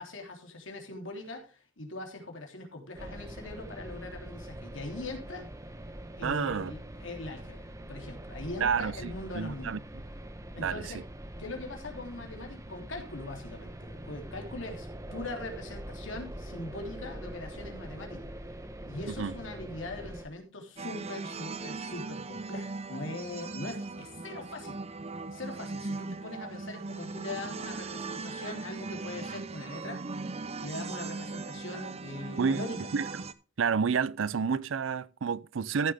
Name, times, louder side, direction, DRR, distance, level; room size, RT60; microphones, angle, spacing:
voice 1, 0.0-5.4 6.2-9.8 10.5-11.0 11.4-18.3 18.8-24.8 25.3-30.1 30.6-32.9, left 2 dB, 70° left, 3.1 m, -41 dB
sound 1, 3.0-20.3, right 1 dB, 15° right, 1.1 m, -43 dB
voice 2, 6.2-6.7 8.6-9.8 10.6-10.8 19.1-19.3 32.4-32.6 32.9-33.1 33.6-35.9, right 6 dB, 75° right, 0.5 m, -29 dB
sound 2, 20.8-33.3, right 3 dB, 30° right, 0.6 m, -39 dB
14.5 x 7.5 x 3.5 m
head